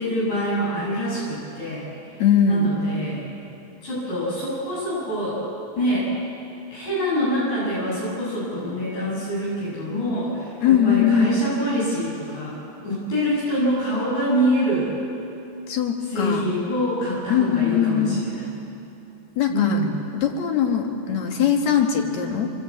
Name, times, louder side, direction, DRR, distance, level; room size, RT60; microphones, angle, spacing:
voice 1, 0.0-1.8 2.4-3.2 3.8-5.4 5.8-6.1 6.7-12.6 12.8-14.9 16.1-18.4 19.5-19.9, equal, 70° left, -8 dB, 9.5 m, -25 dB
voice 2, 2.2-2.7 10.6-11.3 15.7-16.5 17.3-18.2 19.4-19.8 20.1-22.5, left 8 dB, 50° left, 2 dB, 2.7 m, -21 dB
27.5 x 23.0 x 8.6 m, 2.8 s
omnidirectional pair, 5.4 m